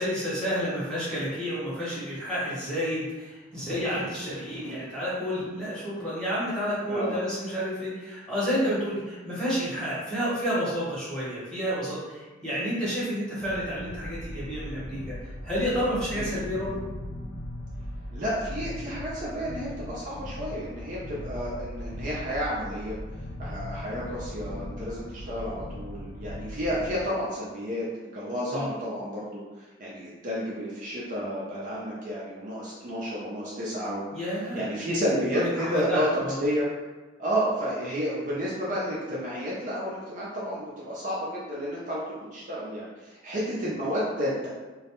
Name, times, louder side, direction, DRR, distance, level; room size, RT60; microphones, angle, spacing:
voice 1, 0.0-15.0 15.4-16.8 28.5-28.7 34.1-34.6 35.3-36.4, equal, 5° left, -10 dB, 0.9 m, -30 dB
sound 1, 13.4-27.0, left 1 dB, 55° left, 0.4 m, -39 dB
voice 2, 18.1-23.0 23.4-36.7 37.2-44.5, equal, 40° right, -7 dB, 0.5 m, -31 dB
2.2 x 2.0 x 2.9 m, 1.2 s
head